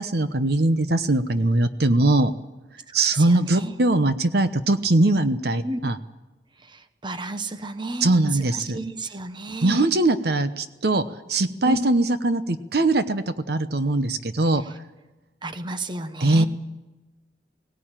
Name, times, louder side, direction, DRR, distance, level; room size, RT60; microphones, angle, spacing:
voice 1, 0.0-2.3 2.9-6.0 8.0-8.8 9.6-11.0 11.3-14.6 16.2-16.4, right 2 dB, 60° right, 11 dB, 0.9 m, -21 dB
voice 2, 3.1-3.7 5.6-5.8 7.0-9.8 11.7-11.8 15.4-16.4, right 2 dB, 25° right, 10 dB, 1.0 m, -32 dB
18.5 x 18.5 x 8.9 m, 1.1 s
head